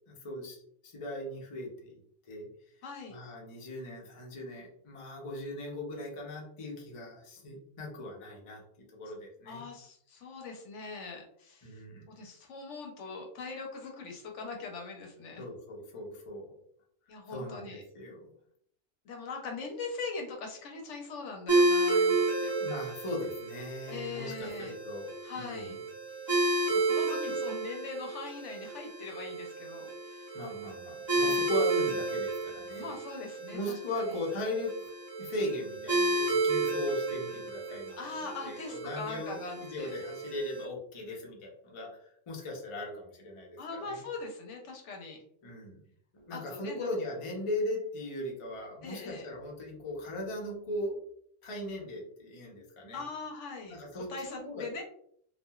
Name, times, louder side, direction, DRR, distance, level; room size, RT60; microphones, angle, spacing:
voice 1, 0.1-2.0 2.2-2.5 3.1-9.6 11.6-12.1 15.4-16.6 17.3-18.3 22.6-25.1 25.4-25.8 30.3-32.9 33.5-34.9 35.2-38.1 38.4-42.0 42.3-44.0 45.4-45.8 46.1-50.9 51.4-53.0 53.7-54.7, left 1 dB, 35° left, -2 dB, 0.5 m, -38 dB
voice 2, 2.8-3.2 9.5-11.7 12.1-15.5 17.1-17.8 19.0-22.7 23.9-24.7 25.2-25.8 26.7-30.4 31.2-31.4 32.8-33.6 34.0-34.1 38.0-39.9 43.6-45.2 46.3-46.9 48.8-49.3 52.9-54.8, left 4 dB, 70° left, 2 dB, 0.9 m, -41 dB
sound 1, 21.5-40.6, right 2 dB, 20° right, 0.7 m, -32 dB
2.8 x 2.4 x 2.2 m, 0.66 s
omnidirectional pair, 1.3 m